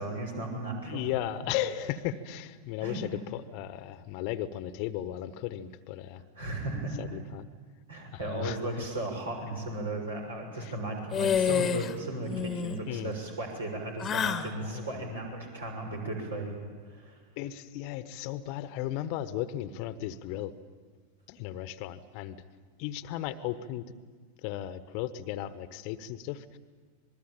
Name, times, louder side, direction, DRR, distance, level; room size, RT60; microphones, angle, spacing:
voice 1, 0.0-1.1 2.8-3.0 6.4-7.0 7.9-16.5 16.8-17.2, right 2 dB, 70° right, 1 dB, 6.4 m, -35 dB
voice 2, 0.8-6.2 7.0-7.5 8.1-8.8 10.6-10.7 12.9-13.2 14.6-15.2 17.4-20.5 21.3-22.4 22.8-23.9 24.4-26.6, left 12 dB, 45° left, 14 dB, 1.1 m, -36 dB
sound 1, 11.1-11.9 12.2-12.8 14.0-14.5, left 8 dB, 20° left, 1.3 m, -28 dB
26.5 x 20.5 x 8.9 m, 1.5 s
figure-of-eight pair, 90°, 0 cm